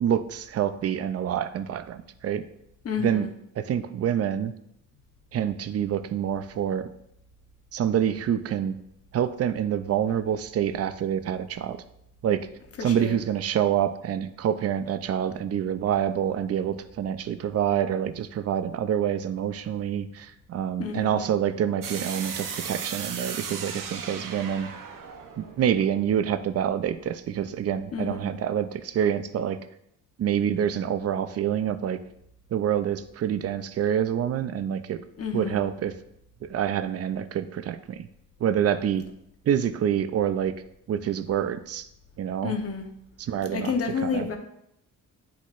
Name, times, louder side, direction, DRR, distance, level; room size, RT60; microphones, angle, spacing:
voice 1, 0.0-2.4 3.0-3.3 3.6-4.5 5.3-6.9 7.7-8.7 9.1-11.8 12.2-12.5 12.8-24.7 25.4-29.6 30.2-32.0 32.5-35.0 35.3-35.9 36.4-38.1 38.4-39.0 39.4-40.5 40.9-41.9 42.2-42.5 43.2-43.7 44.0-44.3, right 9 dB, 50° right, 12 dB, 0.4 m, -27 dB
voice 2, 2.8-3.3 12.8-13.2 20.8-21.2 27.9-28.3 35.2-35.6 42.4-42.9 43.5-44.4, left 6 dB, 45° left, 4 dB, 0.9 m, -30 dB
sound 1, 21.8-26.7, right 6 dB, 70° right, 0.8 m, -36 dB
10.0 x 4.2 x 2.5 m, 0.76 s
wide cardioid pair, 145°, 33 cm